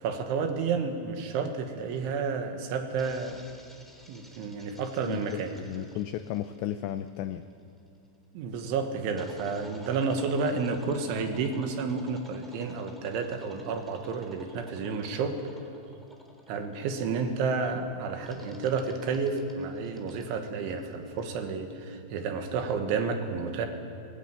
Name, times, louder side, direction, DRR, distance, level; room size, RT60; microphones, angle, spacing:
voice 1, 0.0-3.4 4.1-5.5 8.3-15.4 16.5-23.7, right 5 dB, 75° right, 5 dB, 3.8 m, -31 dB
sound 1, 3.0-7.9 9.2-17.5 18.2-21.4, equal, ahead, 1.4 m, -53 dB
voice 2, 5.0-7.5, left 12 dB, 85° left, 10 dB, 2.5 m, -34 dB
21.0 x 21.0 x 9.3 m, 2.4 s
omnidirectional pair, 5.8 m